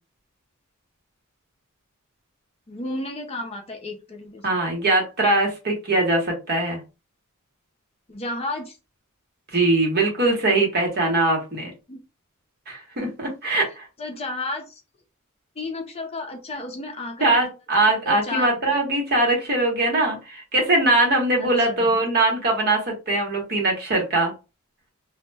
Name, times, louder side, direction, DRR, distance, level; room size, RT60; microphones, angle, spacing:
voice 1, 2.7-4.6 8.1-8.8 11.9-12.0 13.7-14.8 15.6-17.5 17.8-18.8 21.4-21.9, left 2 dB, 30° left, 3 dB, 0.5 m, -33 dB
voice 2, 4.4-6.8 9.5-11.7 12.7-13.8 17.2-24.3, right 2 dB, 45° right, 0 dB, 0.9 m, -21 dB
2.1 x 2.1 x 3.2 m, 0.29 s
head